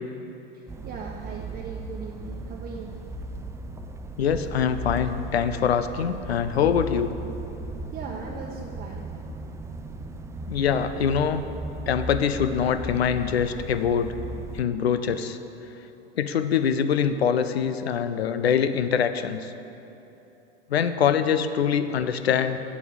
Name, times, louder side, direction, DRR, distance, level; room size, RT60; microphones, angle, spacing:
sound 1, 0.7-14.6, right 1 dB, 10° right, 0.5 m, -36 dB
voice 1, 0.8-2.9 7.9-9.1 15.0-15.1, right 5 dB, 30° right, -1 dB, 1.0 m, -39 dB
voice 2, 4.2-7.1 10.5-11.4 11.9-14.1 14.5-15.4 16.2-19.5 20.7-22.6, left 7 dB, 80° left, 11 dB, 0.7 m, -24 dB
8.4 x 7.5 x 8.4 m, 2.9 s
hypercardioid pair, 95°, 31 cm